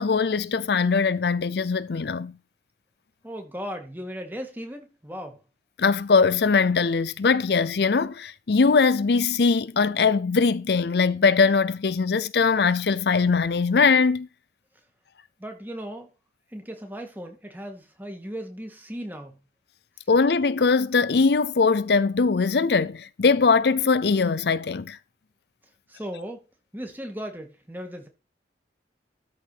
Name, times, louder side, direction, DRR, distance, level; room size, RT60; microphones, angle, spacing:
voice 1, 0.0-2.3 5.8-14.3 20.1-25.0, left 4 dB, 60° left, 0.5 m, -21 dB
voice 2, 3.2-5.4 15.4-16.1 16.5-19.4 25.9-26.4 26.7-28.1, equal, 10° right, 2.1 m, -37 dB
13.0 x 4.7 x 5.8 m
head